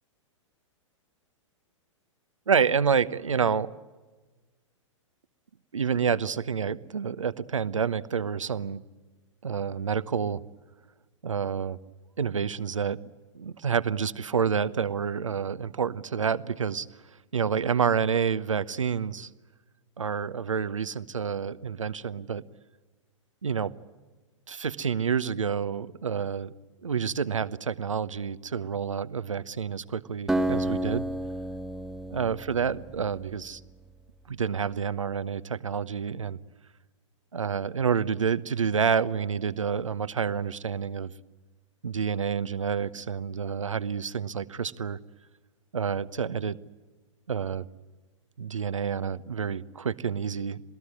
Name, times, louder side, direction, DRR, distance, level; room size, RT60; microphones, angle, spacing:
voice 1, 2.5-3.7 5.7-8.8 9.4-10.4 11.2-11.8 12.2-13.0 13.3-16.9 17.3-19.3 20.0-22.4 23.4-23.7 24.5-26.5 26.8-31.1 32.1-33.6 34.3-36.4 37.3-41.1 41.8-45.0 45.7-46.6 47.3-47.7 48.4-50.6, right 6 dB, 75° right, 15 dB, 1.0 m, -28 dB
Acoustic guitar, 30.3-33.9, right 1 dB, ahead, 1.4 m, -31 dB
27.0 x 18.0 x 9.8 m, 1.3 s
figure-of-eight pair, 110°, 16 cm